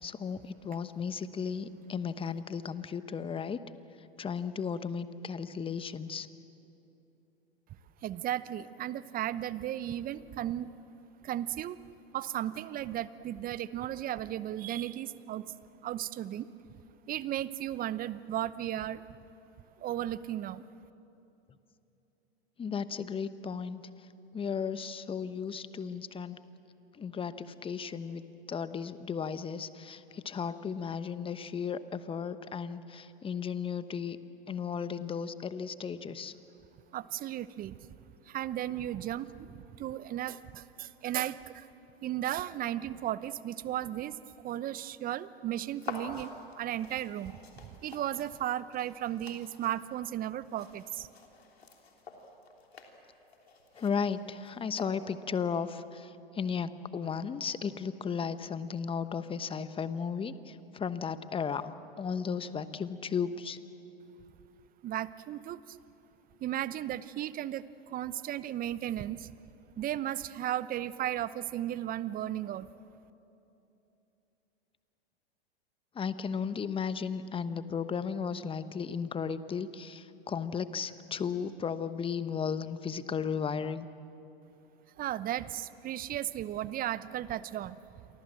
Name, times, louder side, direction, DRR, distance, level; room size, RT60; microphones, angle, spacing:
voice 1, 0.0-3.6 4.2-6.3 22.6-23.8 24.3-26.4 27.0-28.2 28.5-34.2 34.5-36.3 53.8-63.6 75.9-83.8, left 6 dB, 15° left, 13 dB, 1.1 m, -35 dB
voice 2, 8.0-10.7 11.2-11.8 12.1-15.4 15.8-16.5 17.1-19.0 19.8-20.6 36.9-37.8 38.3-41.7 42.0-44.2 44.4-51.1 64.8-65.8 66.4-69.3 69.8-72.7 85.0-87.8, right 12 dB, 30° right, 16 dB, 0.8 m, -35 dB
sound 1, 45.8-55.4, left 4 dB, 85° left, 3.5 m, -48 dB
29.0 x 23.5 x 7.7 m, 2.9 s
hypercardioid pair, 100°, 30 cm